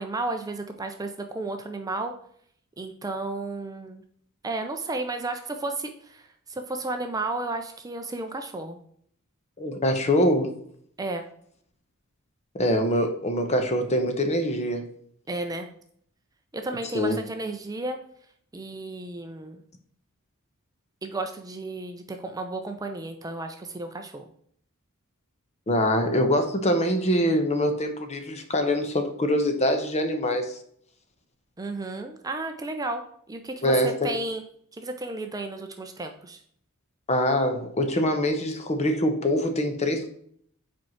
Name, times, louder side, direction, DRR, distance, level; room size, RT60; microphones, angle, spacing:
voice 1, 0.0-2.1 2.8-4.0 4.4-8.8 11.0-11.3 15.3-15.7 16.5-18.0 18.5-19.6 21.0-24.2 31.6-34.4 34.7-36.4, right 2 dB, 15° right, 5 dB, 0.5 m, -33 dB
voice 2, 9.6-10.6 12.5-14.9 16.9-17.2 25.7-30.6 33.6-34.1 37.1-40.1, equal, 30° left, 6 dB, 0.9 m, -24 dB
5.2 x 4.5 x 5.6 m, 0.64 s
head